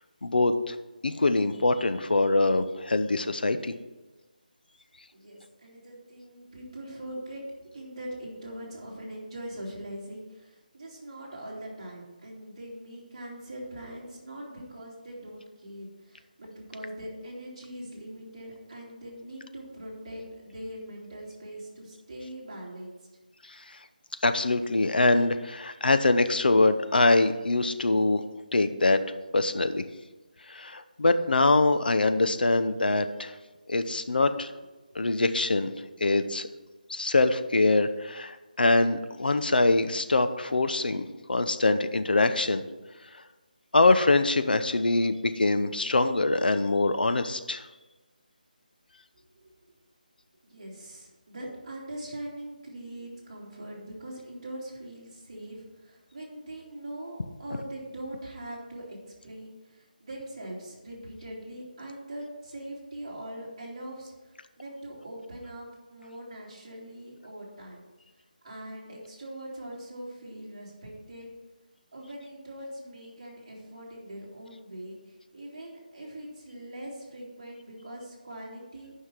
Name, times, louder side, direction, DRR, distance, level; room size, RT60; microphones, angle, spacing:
voice 1, 0.2-0.8 1.0-3.7 24.2-28.2 28.5-29.0 29.3-29.8 30.5-33.3 33.7-34.5 34.9-35.7 36.0-36.5 36.9-42.6 43.7-47.6, left 2 dB, 80° left, 10 dB, 0.8 m, -24 dB
voice 2, 5.1-7.4 7.7-23.0 34.2-34.3 34.9-35.1 49.2-49.6 50.4-59.0 59.2-67.8 68.4-71.3 71.9-78.9, right 1 dB, 30° right, -5 dB, 2.9 m, -42 dB
9.6 x 5.7 x 6.1 m, 1.2 s
figure-of-eight pair, 175°, 5 cm